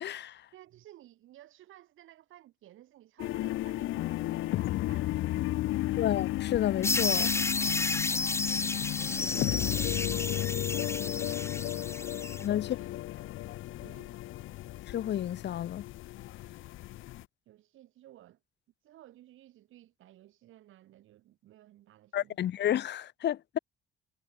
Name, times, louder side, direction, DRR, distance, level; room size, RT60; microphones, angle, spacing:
voice 1, 0.0-0.4 6.0-7.3 12.4-12.7 14.9-15.9 22.1-23.6, left 11 dB, 60° left, 0.8 m, -31 dB
voice 2, 0.5-5.5 7.8-8.6 8.9-12.0 12.4-12.9 13.2-13.3 13.8-14.2 17.5-18.4 18.8-22.4, right 14 dB, 85° right, 5.8 m, -56 dB
sound 1, 3.2-17.2, left 16 dB, 85° left, 1.2 m, -34 dB
sound 2, 6.8-12.4, left 3 dB, 15° left, 0.6 m, -32 dB
cardioid pair, 90°, 20 cm